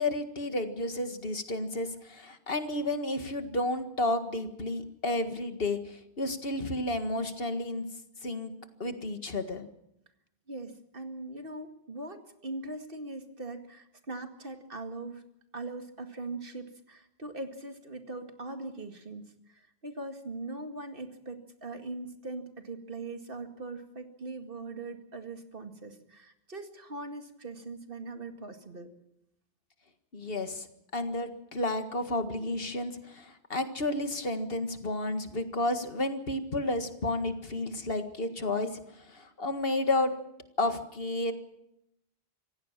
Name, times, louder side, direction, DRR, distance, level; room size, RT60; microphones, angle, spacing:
voice 1, 0.0-7.9 8.2-8.5 8.8-9.7 30.1-30.7 30.9-40.1 40.6-41.3, left 2 dB, 65° left, 8 dB, 2.0 m, -31 dB
voice 2, 10.5-15.2 15.5-28.9, right 2 dB, 60° right, 6 dB, 2.3 m, -41 dB
26.0 x 16.5 x 7.4 m, 0.82 s
omnidirectional pair, 1.0 m